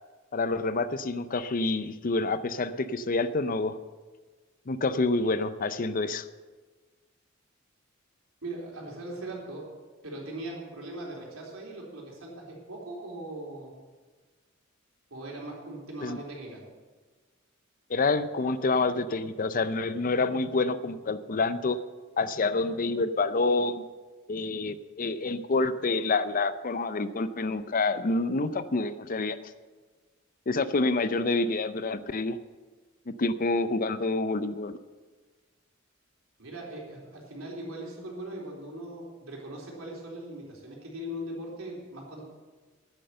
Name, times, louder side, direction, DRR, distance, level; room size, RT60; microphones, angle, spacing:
voice 1, 0.3-3.8 4.7-6.2 16.0-16.2 17.9-21.8 22.2-23.8 24.3-29.4 30.5-32.4 33.1-34.8, left 3 dB, 45° left, 13 dB, 0.6 m, -27 dB
voice 2, 8.4-9.7 10.0-13.7 15.1-16.6 36.4-42.2, right 1 dB, 90° right, -2 dB, 3.8 m, -40 dB
10.5 x 9.9 x 7.7 m, 1.4 s
head